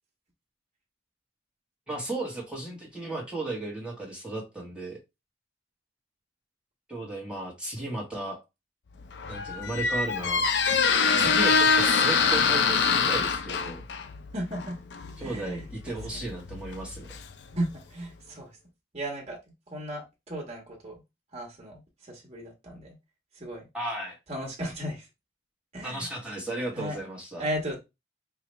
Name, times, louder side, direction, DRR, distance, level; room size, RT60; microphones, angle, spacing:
voice 1, 1.9-5.0 6.9-8.4 9.3-10.4 11.2-13.8 15.2-17.1 23.7-24.2 25.8-27.5, right 2 dB, 5° right, -3 dB, 1.2 m, -34 dB
Squeak, 9.0-17.8, left 5 dB, 75° left, 0.5 m, -25 dB
voice 2, 14.3-14.8 15.2-16.4 17.5-18.6 18.9-19.4 19.7-21.0 21.3-22.9 23.3-23.7 24.3-25.1 25.7-26.1 26.7-27.0 27.4-27.8, right 1 dB, 35° right, -1 dB, 1.3 m, -35 dB
4.7 x 2.3 x 3.1 m, 0.23 s
head